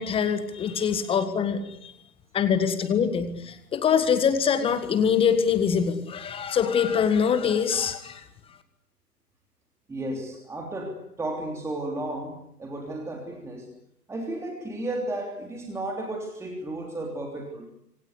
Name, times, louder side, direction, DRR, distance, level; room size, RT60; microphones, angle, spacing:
voice 1, 0.0-1.9 2.3-8.2, left 7 dB, 10° left, 10 dB, 1.6 m, -24 dB
voice 2, 9.9-13.7 14.1-17.7, right 1 dB, 5° right, 2 dB, 3.2 m, -33 dB
27.0 x 25.5 x 8.3 m, 0.74 s
figure-of-eight pair, 125°, 49 cm